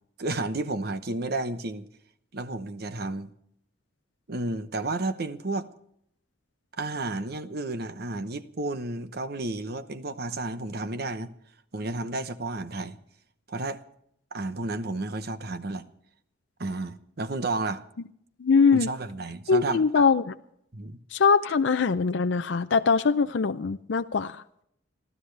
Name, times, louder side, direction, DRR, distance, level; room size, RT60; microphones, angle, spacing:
voice 1, 0.2-1.9 2.3-3.3 4.3-5.7 6.8-11.3 11.7-13.0 13.5-13.8 14.3-15.9 16.6-17.8 18.7-20.0 20.7-21.0, right 2 dB, 55° right, 0.9 m, -32 dB
voice 2, 18.4-18.9 19.5-20.3 21.1-24.4, left 5 dB, 70° left, 0.5 m, -22 dB
29.0 x 12.5 x 3.3 m
head